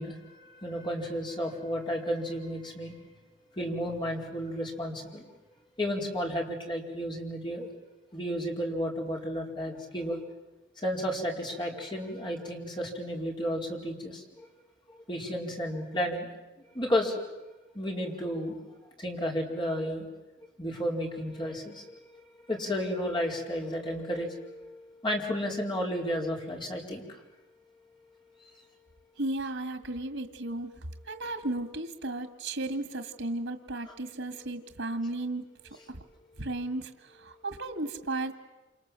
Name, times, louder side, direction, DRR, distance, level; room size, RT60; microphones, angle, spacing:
voice 1, 0.0-3.0 3.5-5.3 5.8-7.7 8.1-10.2 10.8-14.5 14.9-16.3 16.7-17.3 17.7-18.6 19.0-20.1 20.6-27.0 28.4-28.5, equal, 25° left, 0 dB, 4.7 m, -32 dB
voice 2, 29.2-30.7 31.1-35.5 35.9-36.0 36.4-38.3, right 2 dB, 85° right, 9 dB, 2.0 m, -34 dB
28.0 x 28.0 x 7.7 m, 1.1 s
head